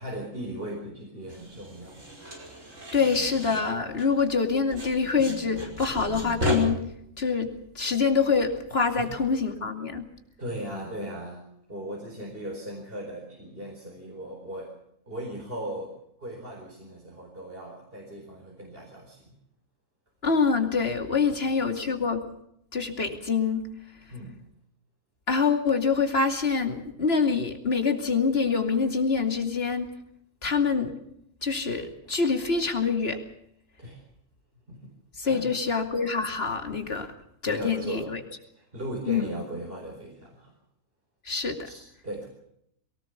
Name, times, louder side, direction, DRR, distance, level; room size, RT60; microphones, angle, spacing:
voice 1, 0.0-2.0 9.0-9.2 10.4-14.7 15.1-19.3 21.3-21.4 21.7-21.8 24.1-24.3 33.8-34.0 34.7-34.9 35.2-35.6 37.4-38.2 38.5-40.5 41.6-42.3, right 1 dB, 45° right, 0 dB, 4.8 m, -38 dB
sound 1, 1.3-4.4 4.7-6.6, left 1 dB, 70° right, 5.7 m, -34 dB
voice 2, 2.9-6.8 7.2-10.1 20.2-22.2 22.7-23.7 25.3-29.9 30.4-30.9 31.4-33.2 35.2-37.1 37.4-38.2 39.1-39.3 41.2-41.7, left 5 dB, 50° left, 5 dB, 2.8 m, -25 dB
23.0 x 18.5 x 7.0 m, 0.74 s
omnidirectional pair, 1.3 m